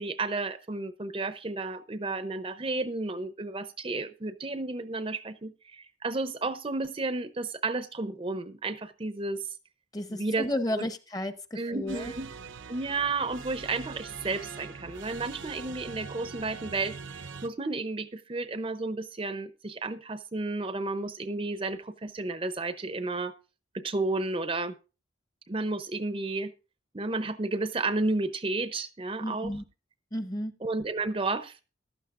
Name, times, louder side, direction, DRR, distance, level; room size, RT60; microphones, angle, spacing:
voice 1, 0.0-9.5 10.1-10.5 10.7-10.9 11.6-12.3 12.7-23.3 23.7-24.7 25.5-26.5 26.9-29.5 30.6-31.6, right 3 dB, 30° right, 12 dB, 0.6 m, -32 dB
voice 2, 9.9-12.1 29.2-29.6 30.1-30.5, left 1 dB, 20° left, 10 dB, 0.8 m, -33 dB
sound 1, 11.9-17.5, right 5 dB, 75° right, 0.7 m, -43 dB
15.0 x 12.0 x 2.5 m, 0.31 s
head